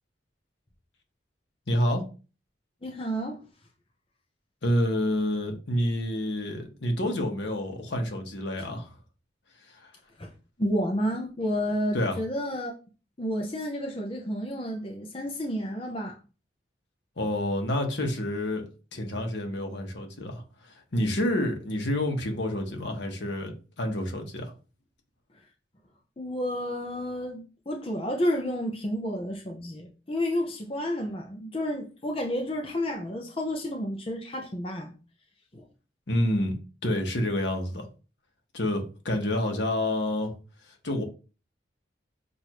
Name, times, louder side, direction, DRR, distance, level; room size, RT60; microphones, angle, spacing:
voice 1, 1.7-2.0 4.6-8.9 9.7-9.9 11.9-12.2 17.2-18.6 18.9-24.5 36.1-36.6 36.8-37.9 38.5-40.3 40.8-41.0, left 1 dB, 70° left, 1.1 m, -28 dB
voice 2, 2.8-3.4 8.6-8.7 10.2-10.3 10.6-12.7 13.2-16.2 26.2-34.9 35.5-35.6, equal, 30° left, 0.6 m, -31 dB
6.5 x 2.6 x 3.0 m
head